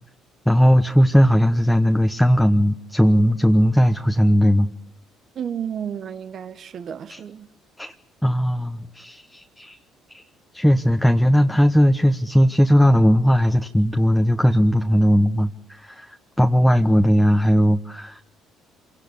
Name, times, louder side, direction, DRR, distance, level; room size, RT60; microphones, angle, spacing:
voice 1, 0.4-4.7 7.1-7.2 7.8-7.9 8.2-9.8 10.1-10.2 10.5-18.2, equal, 5° left, 1.1 m, -18 dB
voice 2, 5.3-7.5, right 8 dB, 55° right, 1.1 m, -32 dB
26.0 x 17.5 x 8.5 m
supercardioid pair, 70°, 0 cm